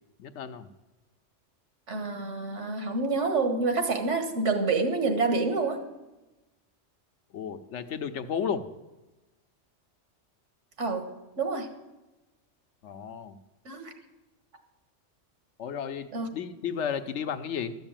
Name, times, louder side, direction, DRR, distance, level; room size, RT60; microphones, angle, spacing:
voice 1, 0.2-0.7 7.3-8.7 12.8-13.4 15.6-17.8, left 7 dB, 80° left, 9 dB, 1.1 m, -33 dB
voice 2, 1.9-5.8 10.8-11.1 11.4-11.7 13.6-13.9 16.1-16.3, right 3 dB, 85° right, 6 dB, 1.8 m, -27 dB
13.5 x 6.1 x 8.9 m, 1.1 s
omnidirectional pair, 1.2 m